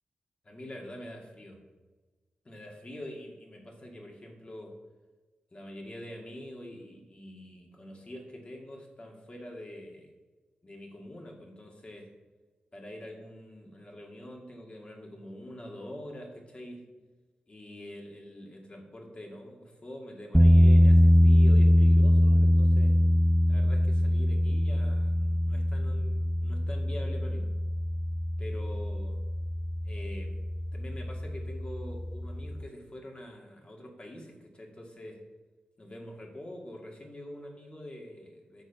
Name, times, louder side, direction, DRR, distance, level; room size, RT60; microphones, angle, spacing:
voice 1, 0.4-1.6 2.4-4.8 5.5-10.1 10.6-12.1 12.7-16.9 17.5-22.9 23.5-27.5 28.4-29.2 29.8-30.4 30.7-35.2 35.8-38.6, left 1 dB, 35° left, 1 dB, 2.2 m, -45 dB
sound 1, 20.3-32.7, left 1 dB, 5° right, 0.4 m, -23 dB
8.1 x 6.5 x 5.8 m, 1.3 s
cardioid pair, 70°, 3 cm